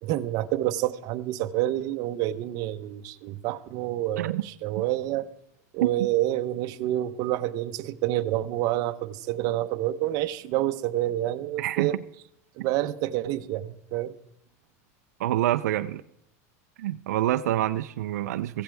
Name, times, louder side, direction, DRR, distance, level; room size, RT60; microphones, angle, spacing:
voice 1, 0.0-5.3 5.7-12.0 12.6-14.2, right 14 dB, 50° right, 0.8 m, -28 dB
voice 2, 11.6-11.9 15.2-16.0 16.8-18.6, right 13 dB, 85° right, 0.5 m, -26 dB
16.5 x 15.0 x 3.5 m
supercardioid pair, 135°, 9 cm